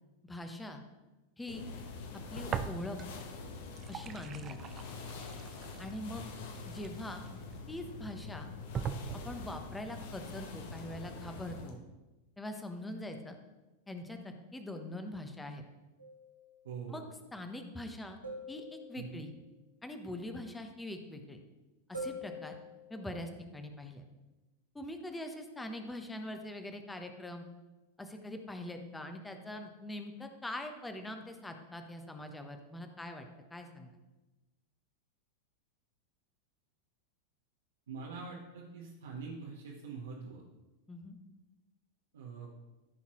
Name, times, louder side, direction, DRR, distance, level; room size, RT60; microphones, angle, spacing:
voice 1, 0.2-0.8 1.4-1.7 2.1-3.0 3.9-4.6 5.8-6.2 6.6-7.2 7.7-8.5 9.2-11.8 12.4-13.4 13.9-15.6 16.9-17.0 17.3-18.2 18.5-19.3 19.8-21.4 21.9-22.5 22.9-24.0 24.7-27.4 28.0-33.9 40.9-41.2, left 1 dB, 10° left, 6 dB, 1.0 m, -43 dB
sound 1, 1.5-11.8, left 3 dB, 55° left, 1.2 m, -45 dB
sound 2, 2.5-3.3 3.6-7.5 8.1-8.2 8.7-9.6, right 7 dB, 25° right, 0.5 m, -41 dB
sound 3, 16.0-16.6 18.2-19.4 21.9-23.2, left 1 dB, 80° right, 2.2 m, -45 dB
voice 2, 16.6-17.1 19.0-19.1 37.9-40.4 42.1-42.5, right 5 dB, 65° right, -2 dB, 1.1 m, -44 dB
14.5 x 5.7 x 3.1 m, 1.1 s
figure-of-eight pair, 90°, 0 cm